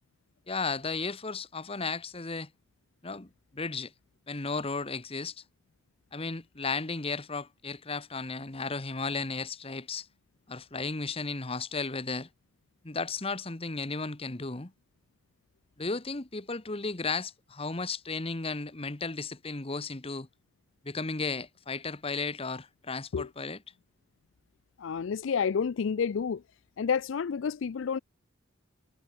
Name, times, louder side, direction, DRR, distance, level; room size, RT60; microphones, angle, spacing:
voice 1, 0.5-2.5 3.0-3.9 4.3-5.4 6.1-10.1 10.5-12.3 12.8-14.7 15.8-20.3 20.8-23.6, left 4 dB, 30° left, 1.1 m, -34 dB
voice 2, 24.8-26.4 26.8-28.0, left 6 dB, 65° left, 0.4 m, -29 dB
head